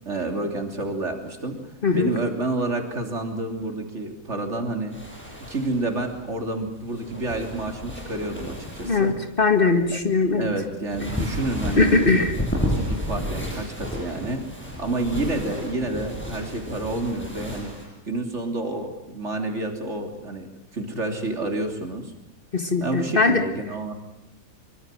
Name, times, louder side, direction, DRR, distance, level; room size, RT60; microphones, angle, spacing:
voice 1, 0.0-5.0 5.5-9.2 9.9-10.0 10.4-14.4 14.8-17.7 18.1-22.1 22.8-23.9, right 2 dB, 55° right, 4 dB, 3.6 m, -29 dB
sound 1, 4.9-17.8, left 1 dB, 5° left, 7.7 m, -32 dB
voice 2, 9.4-10.5 11.8-12.3 22.5-23.4, left 3 dB, 40° left, 7 dB, 1.8 m, -20 dB
24.5 x 24.0 x 7.6 m, 0.84 s
omnidirectional pair, 1.5 m